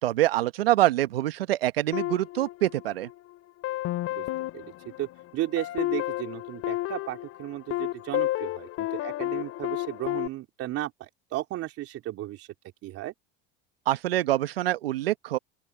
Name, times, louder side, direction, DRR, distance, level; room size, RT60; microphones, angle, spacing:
voice 1, 0.0-3.1 13.9-15.4, right 14 dB, 85° right, 1.3 m, -25 dB
sound 1, 1.9-3.2 3.6-10.3, left 16 dB, 55° left, 3.8 m, -32 dB
voice 2, 4.5-12.5 12.8-13.1, right 15 dB, 55° right, 3.3 m, -35 dB
open air
hypercardioid pair, 80°, 29 cm